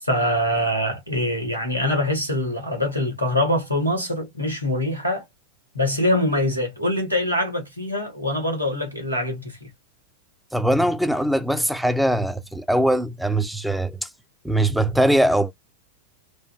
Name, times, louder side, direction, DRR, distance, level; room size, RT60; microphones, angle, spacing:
voice 1, 0.0-5.2 5.7-9.7, left 1 dB, 90° right, 1.2 m, -24 dB
voice 2, 10.5-14.1 14.4-15.5, right 1 dB, ahead, 0.3 m, -21 dB
3.0 x 2.3 x 2.2 m
figure-of-eight pair, 90°, 0 cm